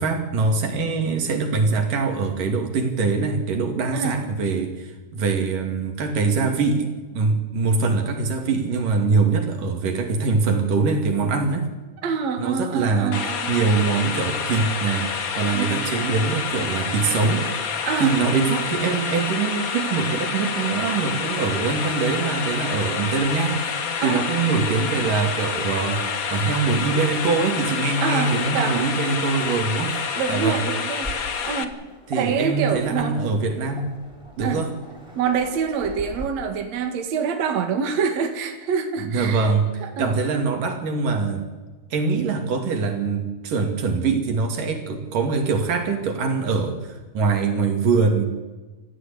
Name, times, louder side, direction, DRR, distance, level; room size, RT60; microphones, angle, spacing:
voice 1, 0.0-11.7 12.4-13.2 13.5-17.5 18.0-23.6 24.0-30.0 30.3-30.6 32.1-33.9 34.4-34.7 39.0-41.5 41.9-48.3, right 4 dB, 85° right, 4 dB, 4.2 m, -23 dB
voice 2, 12.0-13.5 15.5-15.8 17.9-18.2 24.0-24.3 28.0-28.9 30.2-31.1 31.4-31.7 32.1-33.3 34.4-34.7 35.2-39.5 39.8-40.1, right 6 dB, 60° right, 5 dB, 3.0 m, -26 dB
sound 1, 13.1-31.6, left 6 dB, 90° left, 0.7 m, -28 dB
Waves surf, 31.0-36.2, equal, 10° right, 4.2 m, -40 dB
28.0 x 14.5 x 8.7 m, 1.2 s
omnidirectional pair, 3.7 m